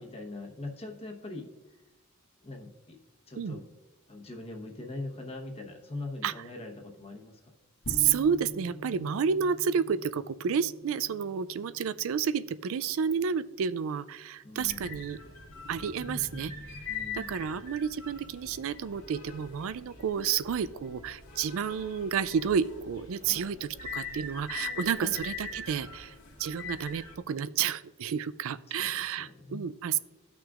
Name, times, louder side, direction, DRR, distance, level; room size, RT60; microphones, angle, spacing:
voice 1, 0.0-1.5 2.4-3.0 3.3-3.7 4.1-7.4 14.4-15.0 16.9-17.6 23.2-23.5 24.0-24.2 24.9-25.2 28.7-29.7, left 2 dB, 30° left, 2 dB, 1.0 m, -42 dB
sound 1, 7.8-13.1, equal, 65° left, 1.1 m, -45 dB
voice 2, 7.9-15.2 15.7-16.5 16.9-26.1 26.4-30.0, right 7 dB, 65° right, 16 dB, 0.4 m, -30 dB
sound 2, 14.6-27.1, left 4 dB, 90° left, 2.0 m, -42 dB
15.5 x 6.1 x 2.4 m, 1.1 s
head